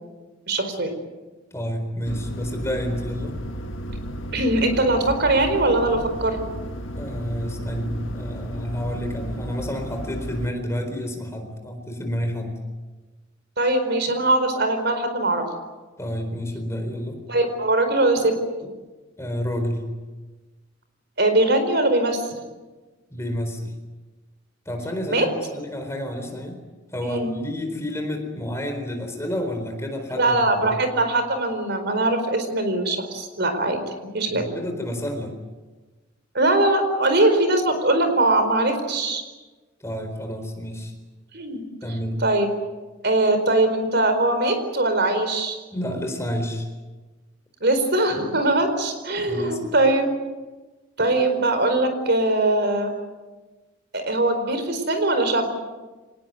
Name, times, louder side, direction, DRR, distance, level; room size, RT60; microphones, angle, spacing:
voice 1, 0.5-0.9 4.3-6.4 13.6-15.4 17.3-18.3 21.2-22.3 25.1-25.2 27.0-27.3 30.2-33.8 34.1-34.5 36.3-39.2 41.3-41.6 42.2-42.5 43.0-45.6 47.6-50.1 51.0-52.9 53.9-55.5, right 2 dB, 55° right, 7 dB, 4.7 m, -21 dB
voice 2, 1.5-3.3 7.0-12.6 16.0-17.2 19.2-19.8 23.1-23.7 24.7-26.6 26.9-30.8 34.3-35.4 39.8-40.9 41.8-42.2 45.7-46.7 49.2-49.7, equal, 15° left, 5 dB, 4.2 m, -29 dB
sound 1, 2.0-10.5, equal, 70° left, 1.6 m, -33 dB
25.5 x 20.0 x 9.3 m, 1.2 s
head